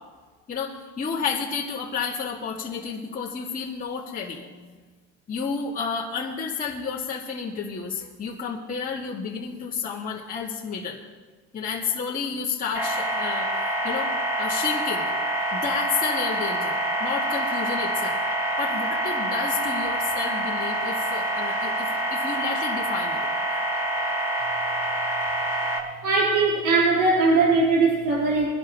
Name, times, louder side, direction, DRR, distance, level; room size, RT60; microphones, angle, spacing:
voice 1, 0.5-4.8 5.3-11.0 11.5-14.1 14.4-15.1 15.5-18.2 18.6-23.3, left 5 dB, 25° left, -5 dB, 2.2 m, -31 dB
sound 1, 12.8-25.8, right 1 dB, 10° right, 3.1 m, -26 dB
voice 2, 26.0-28.5, right 3 dB, 55° right, -4 dB, 4.7 m, -20 dB
22.5 x 11.5 x 3.2 m, 1.4 s
supercardioid pair, 125°, 35 cm